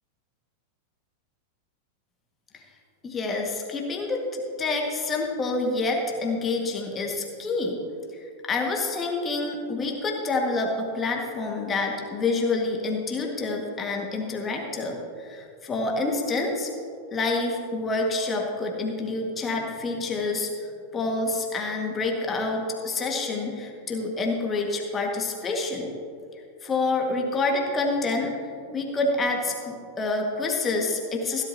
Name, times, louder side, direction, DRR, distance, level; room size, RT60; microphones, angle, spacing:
voice 1, 3.0-4.2 4.6-7.8 8.1-16.7 17.1-20.5 20.9-25.9 26.6-31.4, left 3 dB, 20° left, 1 dB, 1.8 m, -27 dB
16.5 x 11.5 x 2.8 m, 2.4 s
figure-of-eight pair, 90°, 0 cm